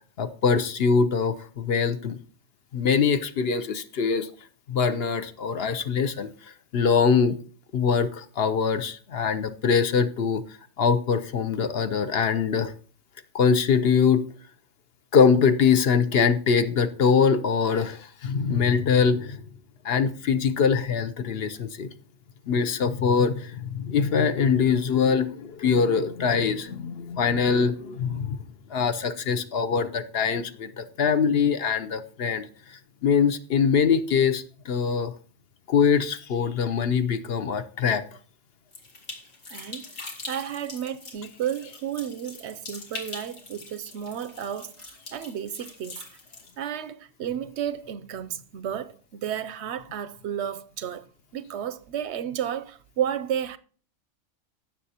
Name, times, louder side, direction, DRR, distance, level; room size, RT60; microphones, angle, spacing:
voice 1, 0.2-2.2 2.7-4.3 4.7-6.3 6.7-7.4 7.7-10.4 10.8-12.7 13.3-14.2 15.1-19.4 19.8-21.9 22.5-28.4 28.7-35.1 35.7-38.0, left 6 dB, 55° left, 0.8 m, -23 dB
sound 1, 38.7-46.5, left 3 dB, 75° left, 2.2 m, -42 dB
voice 2, 39.5-39.9 40.3-46.0 46.6-51.1 51.3-53.6, right 9 dB, 65° right, 0.8 m, -32 dB
16.0 x 6.8 x 2.8 m
omnidirectional pair, 1.3 m